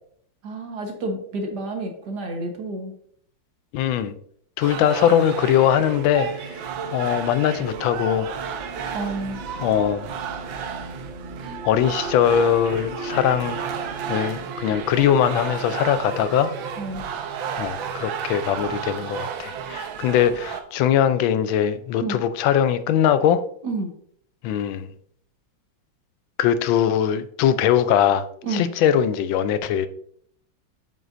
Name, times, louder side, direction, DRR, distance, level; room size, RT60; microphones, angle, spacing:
voice 1, 0.4-2.9 8.9-9.4 11.4-11.7 16.8-17.1 22.0-22.2 23.6-23.9 28.4-28.7, right 2 dB, 60° right, 4 dB, 1.7 m, -30 dB
voice 2, 3.7-4.1 4.6-6.6 6.9-8.3 9.6-10.1 11.6-13.6 14.1-16.5 17.6-23.4 24.4-24.9 26.4-28.3 28.5-29.9, left 9 dB, 85° left, 13 dB, 1.4 m, -21 dB
sound 1, 4.6-20.6, right 8 dB, 85° right, 1.6 m, -33 dB
sound 2, 5.0-19.5, right 2 dB, 30° right, 3.8 m, -40 dB
7.7 x 7.6 x 2.5 m, 0.64 s
omnidirectional pair, 2.1 m